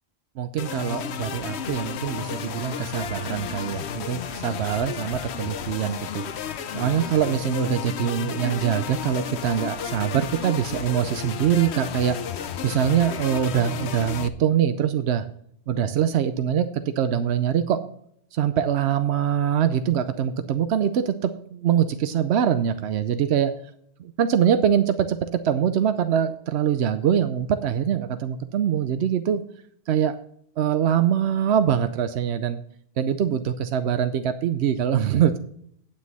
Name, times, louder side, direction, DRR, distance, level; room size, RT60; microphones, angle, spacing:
voice 1, 0.4-6.2 6.7-12.2 12.6-15.2 15.7-17.8 18.3-23.5 24.2-29.4 29.9-30.2 30.6-32.6 33.0-35.4, right 9 dB, 85° right, 10 dB, 0.9 m, -23 dB
sound 1, 0.6-14.3, left 8 dB, 80° left, 1.0 m, -33 dB
9.4 x 8.9 x 4.0 m, 0.66 s
omnidirectional pair, 1.1 m